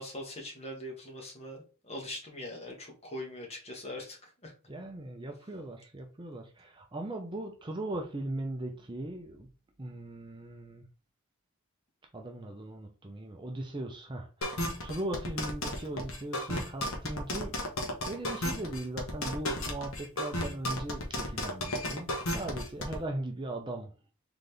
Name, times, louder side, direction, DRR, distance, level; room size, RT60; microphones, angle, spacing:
voice 1, 0.0-4.2 4.4-4.5, left 1 dB, 30° left, 1.5 m, -41 dB
voice 2, 4.7-9.5 9.8-10.8 12.1-17.6 18.1-23.9, right 1 dB, 25° right, 0.6 m, -39 dB
sound 1, 14.4-23.0, left 1 dB, 75° left, 1.3 m, -33 dB
4.0 x 3.9 x 3.4 m
head